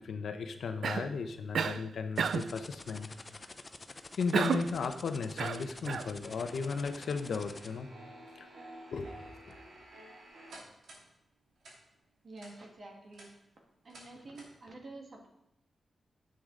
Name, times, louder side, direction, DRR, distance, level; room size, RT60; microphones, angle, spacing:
voice 1, 0.0-3.1 4.1-7.9 8.4-8.5 8.9-9.1 9.4-9.6, left 5 dB, 70° left, 7 dB, 0.8 m, -35 dB
Cough, 0.8-1.2 1.5-1.8 2.2-2.6 4.3-4.8 5.4-6.1, right 6 dB, 75° right, 0.3 m, -31 dB
sound 1, 2.1-7.7, left 3 dB, 25° left, 0.5 m, -48 dB
sound 2, 6.2-11.1 11.6-11.8 12.4-12.5 13.0-13.3 13.9-14.1 14.4-14.5, right 1 dB, 90° right, 2.8 m, -52 dB
voice 2, 12.2-13.3 13.8-15.3, right 2 dB, 40° right, 1 dB, 1.6 m, -49 dB
9.8 x 7.8 x 3.8 m, 0.86 s
wide cardioid pair, 175°, 0 cm